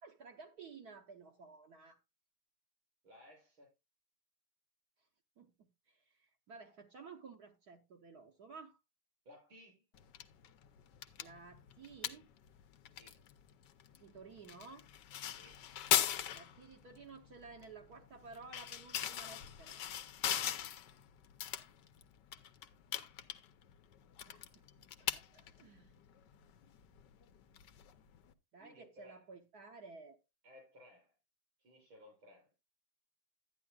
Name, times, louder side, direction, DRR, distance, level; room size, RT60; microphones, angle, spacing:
voice 1, 0.0-2.0 5.4-8.8 11.2-12.3 14.0-14.9 16.3-19.9 24.3-25.9 28.5-30.2, right 4 dB, 60° right, 1.2 m, -54 dB
voice 2, 3.0-3.7 9.3-9.9 13.0-13.2 15.4-15.7 28.6-29.3 30.4-31.1 31.6-32.5, left 1 dB, 90° right, 7.6 m, -59 dB
sound 1, 9.9-28.3, left 10 dB, 65° left, 1.2 m, -41 dB
12.0 x 9.7 x 2.3 m
omnidirectional pair, 2.2 m